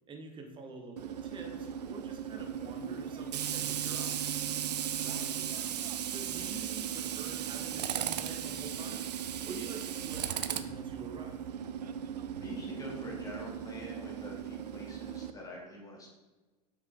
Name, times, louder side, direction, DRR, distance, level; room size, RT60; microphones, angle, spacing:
voice 1, 0.1-4.2 6.1-11.4, right 3 dB, 25° right, 3 dB, 1.4 m, -47 dB
Tools, 1.0-15.3, right 9 dB, 80° right, 0.6 m, -37 dB
voice 2, 12.4-16.1, left 1 dB, 15° left, -2 dB, 2.7 m, -45 dB
7.4 x 6.4 x 3.7 m, 1.2 s
hypercardioid pair, 100°, 20 cm